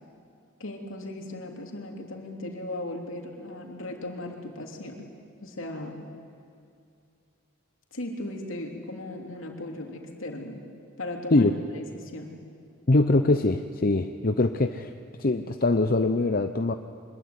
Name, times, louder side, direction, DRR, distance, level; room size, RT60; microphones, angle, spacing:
voice 1, 0.6-5.1 5.4-6.0 7.9-10.6 11.0-12.3, left 1 dB, 65° left, 2 dB, 3.2 m, -37 dB
voice 2, 12.9-14.9 15.2-16.7, left 2 dB, 45° left, 7 dB, 0.7 m, -23 dB
24.0 x 21.0 x 9.6 m, 2.4 s
head